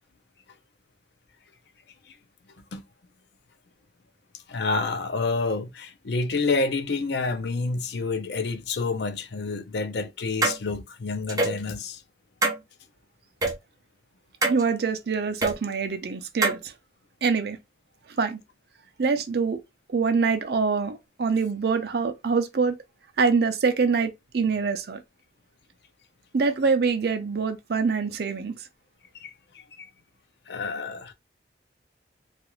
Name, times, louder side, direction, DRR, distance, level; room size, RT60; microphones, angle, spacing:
voice 1, 4.3-12.0 29.1-29.9 30.5-31.1, left 3 dB, 70° left, 0.5 m, -29 dB
sound 1, 10.4-10.6 11.3-11.6 12.4-12.6 13.4-13.5 14.4-14.6 15.4-15.5 16.4-16.6, right 2 dB, 20° right, 0.6 m, -23 dB
voice 2, 14.5-16.7 17.2-17.6 18.2-18.4 19.0-19.6 19.9-22.8 23.2-25.0 26.3-28.5, right 5 dB, 60° right, 0.5 m, -25 dB
2.4 x 2.4 x 2.9 m
head